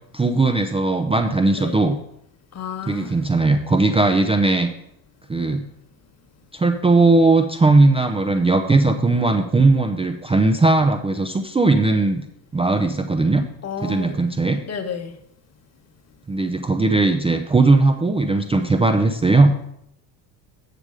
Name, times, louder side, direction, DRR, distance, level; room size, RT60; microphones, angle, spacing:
voice 1, 0.1-2.0 2.9-4.7 5.3-5.6 6.5-12.2 12.5-13.4 13.8-14.6 16.3-19.5, right 3 dB, 15° right, 7 dB, 0.5 m, -18 dB
voice 2, 1.6-1.9 2.5-3.2 13.6-14.2 14.7-15.1, left 6 dB, 35° left, 6 dB, 1.3 m, -31 dB
8.8 x 6.8 x 4.9 m, 0.75 s
supercardioid pair, 100°, 45 cm